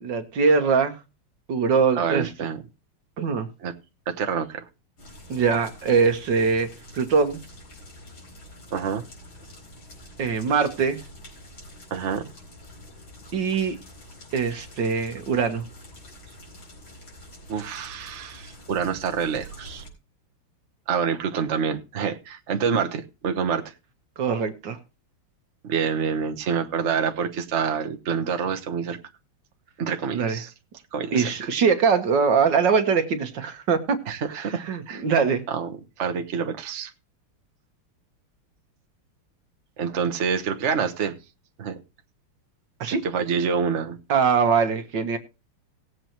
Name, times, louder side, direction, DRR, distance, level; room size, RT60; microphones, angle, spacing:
voice 1, 0.0-1.0 1.5-2.3 3.2-3.5 5.3-7.4 10.2-11.0 13.3-13.8 14.3-15.6 24.2-24.8 30.1-30.4 31.1-34.0 34.3-35.4 42.8-43.0 44.1-45.2, right 5 dB, 60° right, 8 dB, 1.7 m, -22 dB
voice 2, 1.9-2.6 3.6-3.7 4.1-4.6 8.7-9.0 11.9-12.2 17.5-19.8 20.9-23.6 25.6-29.0 29.8-30.5 30.9-31.3 34.1-35.0 35.5-36.9 39.8-41.1 41.6-41.8 43.0-44.0, right 6 dB, 45° right, 6 dB, 1.1 m, -27 dB
sound 1, 5.0-19.9, left 1 dB, 65° left, 5.2 m, -46 dB
19.0 x 7.9 x 3.0 m, 0.29 s
omnidirectional pair, 2.4 m